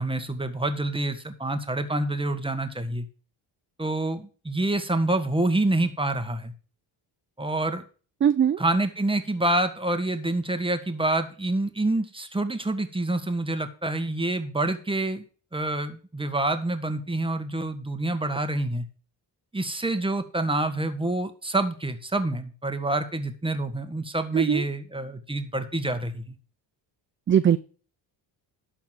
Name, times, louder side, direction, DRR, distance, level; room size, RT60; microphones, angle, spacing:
voice 1, 0.0-3.1 3.8-6.5 7.4-7.8 8.6-15.2 15.5-18.9 19.5-26.4, right 2 dB, 10° right, 8 dB, 1.7 m, -27 dB
voice 2, 8.2-8.6 24.3-24.6 27.3-27.6, right 9 dB, 30° right, 13 dB, 0.4 m, -20 dB
12.0 x 4.3 x 7.5 m, 0.39 s
cardioid pair, 80°, 46 cm